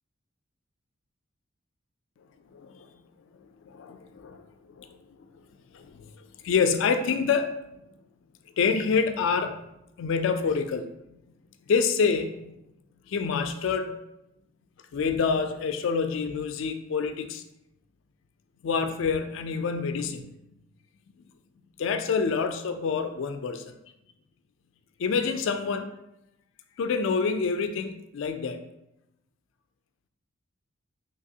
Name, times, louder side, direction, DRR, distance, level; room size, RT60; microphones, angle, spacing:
voice 1, 2.5-2.9 3.7-4.4 4.8-4.9 5.7-6.0 6.4-7.5 8.6-9.6 10.0-10.9 11.7-12.5 13.1-14.0 14.9-17.4 18.6-20.3 21.8-23.7 25.0-25.9 26.8-28.6, left 5 dB, 60° left, 8 dB, 0.3 m, -27 dB
3.2 x 2.9 x 2.7 m, 0.86 s
head